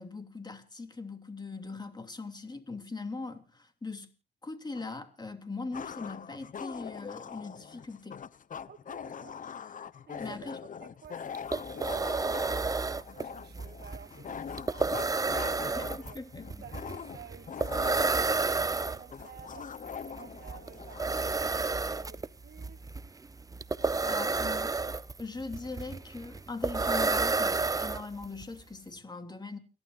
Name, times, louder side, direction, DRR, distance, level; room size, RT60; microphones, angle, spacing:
voice 1, 0.0-4.1 4.4-8.2 10.2-10.6 15.7-16.7 24.1-24.7 25.2-29.6, left 3 dB, 20° left, 2.9 m, -40 dB
sound 1, 4.7-4.9 5.7-21.1, left 7 dB, 40° left, 0.8 m, -43 dB
voice 2, 8.7-9.4 10.1-12.1 12.5-16.2 16.6-22.9, right 8 dB, 55° right, 1.6 m, -53 dB
sound 2, 11.0-11.1 11.3-28.4, right 3 dB, 15° right, 0.6 m, -31 dB
30.0 x 11.5 x 2.6 m
cardioid pair, 85°, 20 cm